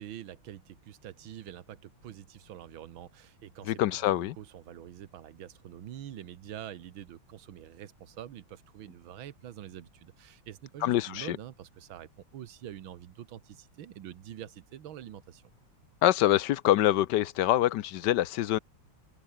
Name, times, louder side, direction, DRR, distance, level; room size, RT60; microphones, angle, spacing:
voice 1, 0.0-15.4, right 11 dB, 90° right, 1.9 m, -46 dB
voice 2, 3.7-4.3 10.8-11.4 16.0-18.6, left 13 dB, 70° left, 1.2 m, -25 dB
omnidirectional pair, 2.2 m